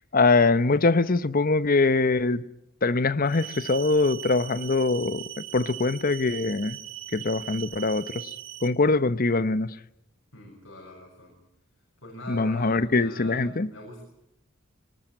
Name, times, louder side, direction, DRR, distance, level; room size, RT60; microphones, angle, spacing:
voice 1, 0.1-2.4 2.8-6.8 7.1-8.4 8.6-9.8 12.3-13.7, left 3 dB, 45° left, 0.9 m, -23 dB
sound 1, 3.2-8.7, right 13 dB, 75° right, 2.2 m, -40 dB
voice 2, 10.3-11.4 12.0-13.4 13.7-14.0, left 1 dB, 65° left, 6.6 m, -42 dB
23.5 x 20.0 x 9.1 m
head